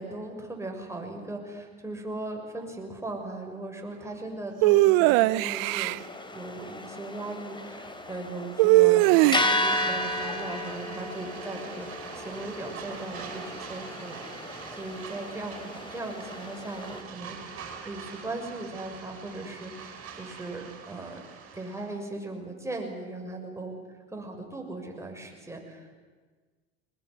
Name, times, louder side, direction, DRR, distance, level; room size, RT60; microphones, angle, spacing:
voice 1, 0.0-6.0 6.3-11.9 12.1-21.2 21.5-23.7 24.1-26.0, right 2 dB, 10° right, 2 dB, 6.5 m, -38 dB
sound 1, 4.6-6.0 8.6-9.7, right 20 dB, 65° right, 0.7 m, -20 dB
sound 2, 6.0-17.0, left 1 dB, 15° left, 3.2 m, -34 dB
sound 3, 9.0-22.0, right 6 dB, 45° right, 6.4 m, -43 dB
22.5 x 20.5 x 9.9 m, 1.4 s
hypercardioid pair, 75°, 30 cm